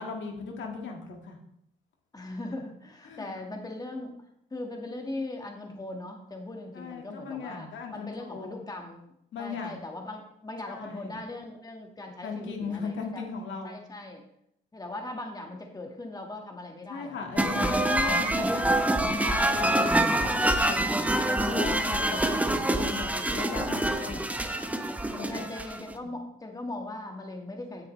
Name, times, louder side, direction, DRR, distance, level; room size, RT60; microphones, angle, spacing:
voice 1, 0.0-1.4 3.0-3.4 6.7-8.6 9.3-9.8 10.6-11.2 12.2-13.8 16.9-20.9 21.4-24.2 25.2-25.5, left 5 dB, 70° left, 2 dB, 1.9 m, -37 dB
voice 2, 2.1-4.1 4.5-9.1 9.4-13.2 13.6-14.2 14.7-17.3 17.6-17.9 18.8-19.1 20.5-20.6 21.7-22.6 23.6-24.0 24.4-24.5 25.1-27.9, left 2 dB, 20° left, 2 dB, 1.7 m, -40 dB
sound 1, 17.4-25.9, right 1 dB, 5° right, 0.8 m, -26 dB
16.5 x 6.6 x 3.2 m, 0.74 s
cardioid pair, 90°, 20 cm